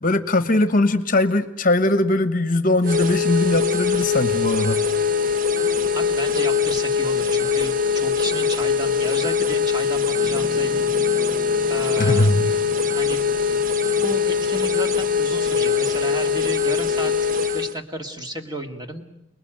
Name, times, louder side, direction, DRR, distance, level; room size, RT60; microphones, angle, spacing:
voice 1, 0.0-4.8 12.0-12.5, left 2 dB, 40° left, 12 dB, 1.2 m, -20 dB
sound 1, 2.8-17.8, left 6 dB, 40° right, 0.9 m, -22 dB
voice 2, 5.5-10.9 11.7-12.3 12.9-13.2 14.0-19.0, equal, 20° right, 4 dB, 2.1 m, -32 dB
Piano, 10.2-15.3, right 2 dB, 5° left, 2.4 m, -40 dB
30.0 x 20.5 x 9.1 m, 0.87 s
head